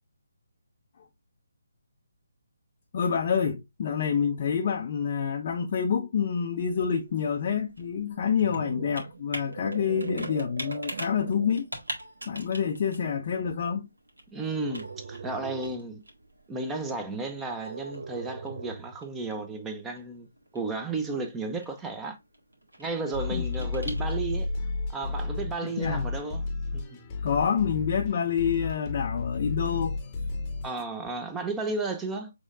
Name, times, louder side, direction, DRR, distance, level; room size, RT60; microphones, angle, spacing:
voice 1, 2.9-11.6 12.3-13.9 23.3-23.4 25.6-26.1 27.2-30.6, left 7 dB, 35° left, 0.5 m, -28 dB
Computer keyboard, 6.2-24.5, right 1 dB, 70° right, 1.7 m, -45 dB
sound 1, 8.0-11.7 12.3-12.6 14.4-15.9 17.6-19.0, right 5 dB, 50° right, 0.5 m, -40 dB
voice 2, 14.3-16.0 16.5-20.3 20.5-22.2 22.8-24.5 24.9-26.4 26.7-27.0 30.6-32.3, right 3 dB, 10° right, 0.6 m, -33 dB
sound 2, 23.1-30.8, left 3 dB, 20° left, 0.9 m, -32 dB
6.2 x 3.5 x 2.4 m
figure-of-eight pair, 145°, 0 cm